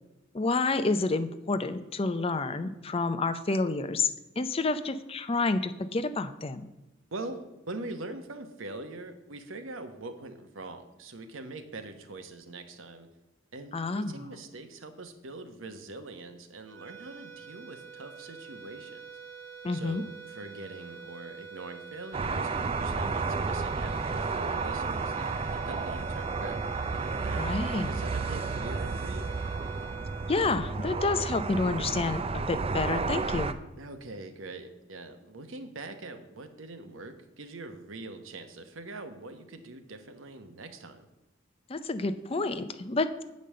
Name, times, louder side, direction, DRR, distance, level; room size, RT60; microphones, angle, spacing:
voice 1, 0.3-4.1 4.4-6.7 13.7-14.1 19.6-20.0 27.3-28.0 30.3-33.6 41.7-43.2, left 3 dB, 30° left, 12 dB, 0.5 m, -29 dB
voice 2, 7.1-13.1 13.5-19.0 19.7-26.6 27.2-29.3 33.8-41.1, right 2 dB, 75° right, 8 dB, 1.0 m, -43 dB
sound 1, 16.6-31.2, right 6 dB, 55° right, 1.3 m, -45 dB
sound 2, 22.1-33.5, right 4 dB, 30° right, 0.4 m, -32 dB
8.6 x 5.3 x 7.6 m, 1.0 s
head